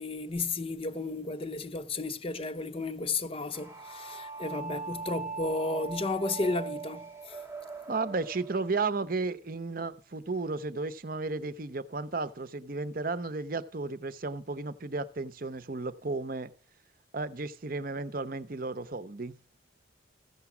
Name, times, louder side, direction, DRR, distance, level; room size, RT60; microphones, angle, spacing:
voice 1, 0.0-7.4, left 3 dB, 30° left, 0.7 m, -33 dB
sound 1, 3.5-8.7, right 4 dB, 10° right, 0.7 m, -40 dB
voice 2, 7.9-16.5 17.1-19.3, right 3 dB, 45° right, 0.8 m, -33 dB
15.0 x 6.9 x 6.1 m
head